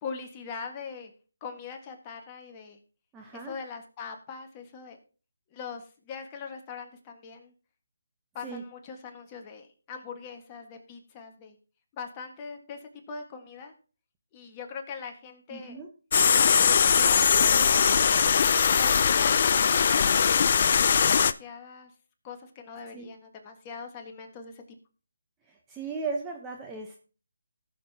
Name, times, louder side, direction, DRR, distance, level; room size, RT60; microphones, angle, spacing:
voice 1, 0.0-1.1 1.4-2.8 3.3-5.0 5.5-7.5 8.3-11.6 11.9-13.7 14.3-15.8 16.3-18.3 18.8-20.2 20.9-21.9 22.2-24.6, left 5 dB, 20° left, 3 dB, 1.5 m, -41 dB
voice 2, 3.1-3.5 8.4-8.6 15.5-15.9 22.9-23.0 25.7-27.0, right 4 dB, 10° right, 1 dB, 0.9 m, -36 dB
sound 1, 16.1-21.3, left 6 dB, 45° left, 0.4 m, -21 dB
18.5 x 6.6 x 2.8 m, 0.36 s
figure-of-eight pair, 155°, 0 cm